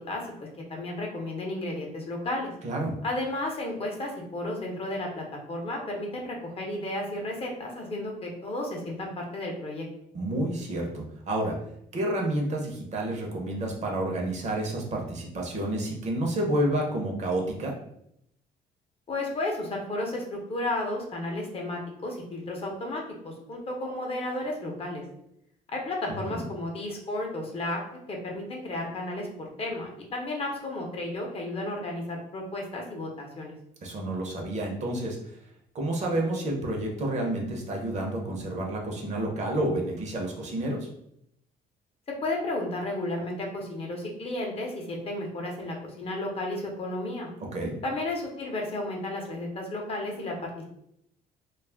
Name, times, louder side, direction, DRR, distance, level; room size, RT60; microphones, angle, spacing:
voice 1, 0.1-2.5 3.0-9.9 19.1-25.0 25.7-27.8 28.1-29.3 29.6-33.5 42.1-47.3 47.8-50.3, left 1 dB, 35° left, 0 dB, 0.7 m, -33 dB
voice 2, 2.6-2.9 10.1-11.6 11.9-17.7 26.1-26.4 33.8-35.4 35.7-40.9 47.5-47.7, right 1 dB, 45° right, 0 dB, 0.7 m, -29 dB
2.3 x 2.0 x 3.4 m, 0.75 s
cardioid pair, 110°, 17 cm